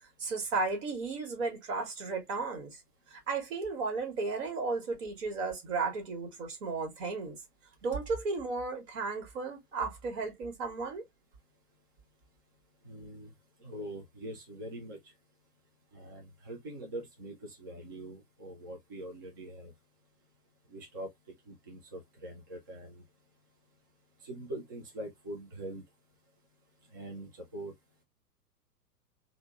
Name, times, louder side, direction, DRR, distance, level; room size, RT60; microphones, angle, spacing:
voice 1, 0.2-2.8 3.1-7.4 7.8-11.0, right 4 dB, 50° right, 1.5 m, -34 dB
voice 2, 12.8-13.3 13.6-15.0 15.9-19.7 20.7-21.1 21.5-23.0 24.2-25.8 26.9-27.7, right 1 dB, 15° right, 0.4 m, -43 dB
3.5 x 2.1 x 2.4 m
figure-of-eight pair, 105°, 47 cm